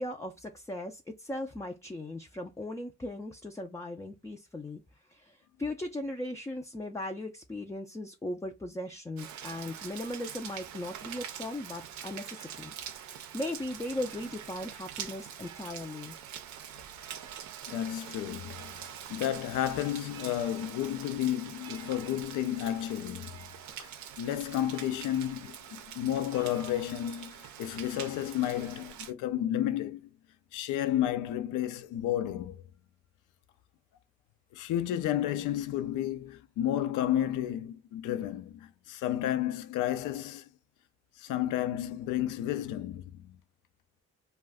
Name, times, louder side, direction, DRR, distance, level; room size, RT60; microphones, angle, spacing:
voice 1, 0.0-4.8 5.1-16.2, left 1 dB, 10° left, 0.3 m, -38 dB
Rain, 9.2-29.1, right 9 dB, 70° right, 0.5 m, -44 dB
voice 2, 17.7-23.5 23.8-23.9 24.2-30.0 30.5-32.6 34.5-40.5 41.2-43.4, left 12 dB, 85° left, 0.5 m, -32 dB
2.4 x 2.1 x 3.4 m
cardioid pair, 90°, 30 cm